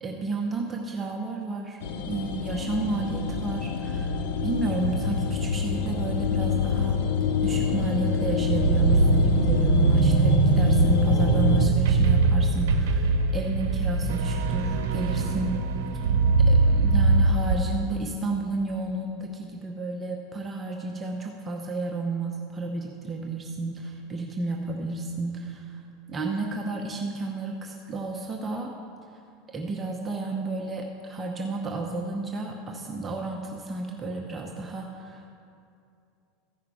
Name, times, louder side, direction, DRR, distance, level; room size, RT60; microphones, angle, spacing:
voice 1, 0.0-1.8 2.1-7.0 7.4-15.6 16.5-25.8 26.1-28.7 29.5-35.3, right 3 dB, 20° right, 0 dB, 0.9 m, -32 dB
sound 1, 1.8-11.7, left 5 dB, 75° left, 0.7 m, -26 dB
sound 2, 8.5-17.6, right 4 dB, 80° right, 0.8 m, -22 dB
14.5 x 5.6 x 4.8 m, 2.5 s
supercardioid pair, 120°, 0 cm